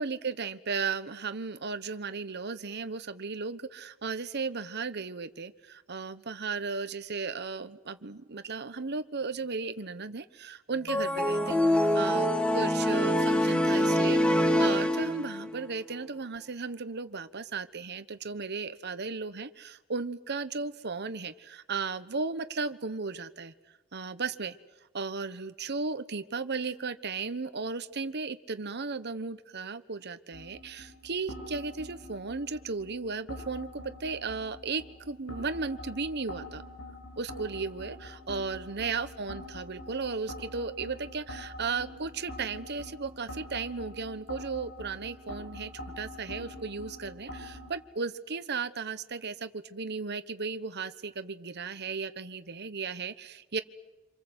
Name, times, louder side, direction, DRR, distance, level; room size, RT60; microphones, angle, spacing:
voice 1, 0.0-12.3 12.5-23.5 23.9-24.6 24.9-36.6 37.2-45.7 46.0-53.6, right 4 dB, 55° right, 11 dB, 1.1 m, -35 dB
sound 1, 10.9-15.5, left 1 dB, 5° left, 1.5 m, -25 dB
sound 2, 30.3-47.7, left 1 dB, 70° left, 7.6 m, -45 dB
27.0 x 27.0 x 8.1 m, 1.1 s
head